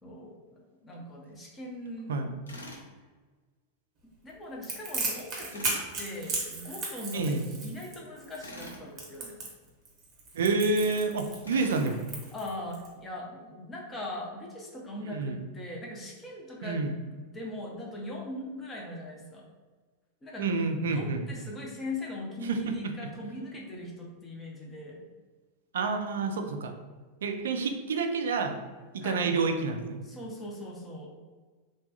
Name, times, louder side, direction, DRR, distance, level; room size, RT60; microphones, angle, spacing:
voice 1, 0.0-2.3 4.2-5.7 6.0-9.4 12.3-16.8 17.2-19.4 20.2-20.5 20.8-25.1 29.0-29.3 30.0-31.1, left 1 dB, 20° left, -2 dB, 0.7 m, -40 dB
Tools, 2.5-2.9 5.5-5.9 8.4-8.8 11.4-11.9, left 1 dB, 75° left, 0.6 m, -44 dB
Crackle, 4.6-12.9, right 3 dB, 30° right, 1.0 m, -36 dB
voice 2, 10.3-12.1 15.1-15.4 16.6-16.9 20.4-21.2 22.4-22.7 25.7-26.7 27.2-28.6 28.9-30.0, right 4 dB, 60° right, 5 dB, 0.3 m, -28 dB
3.3 x 2.2 x 2.7 m, 1.4 s
figure-of-eight pair, 90°, 0 cm